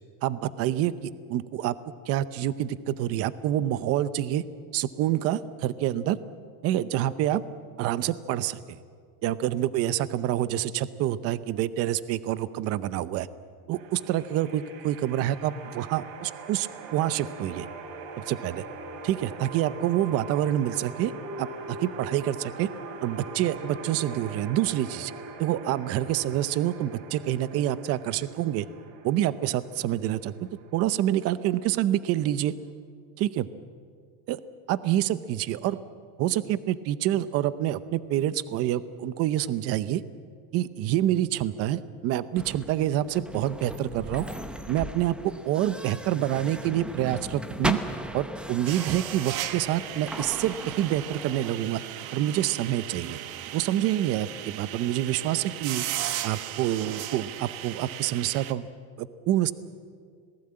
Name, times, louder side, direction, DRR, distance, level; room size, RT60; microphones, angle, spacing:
voice 1, 0.2-1.7 2.1-4.4 4.7-6.2 6.6-7.4 7.8-8.8 9.2-13.3 13.7-17.7 18.2-18.6 19.0-21.1 21.4-22.7 23.0-25.1 25.4-28.7 29.0-30.3 30.7-32.5 33.2-33.5 34.3-34.4 34.7-35.8 36.2-40.0 40.5-44.3 44.7-47.8 48.1-51.8 52.1-53.2 53.5-55.8 56.2-58.7 59.0-59.5, right 12 dB, 35° right, 15 dB, 0.7 m, -27 dB
sound 1, 13.7-32.7, right 3 dB, 65° right, 3.2 m, -42 dB
sound 2, 42.4-51.5, equal, ahead, 0.7 m, -37 dB
sound 3, 48.7-58.5, right 13 dB, 90° right, 1.5 m, -36 dB
26.5 x 19.5 x 8.7 m, 2.1 s
supercardioid pair, 160°, 41 cm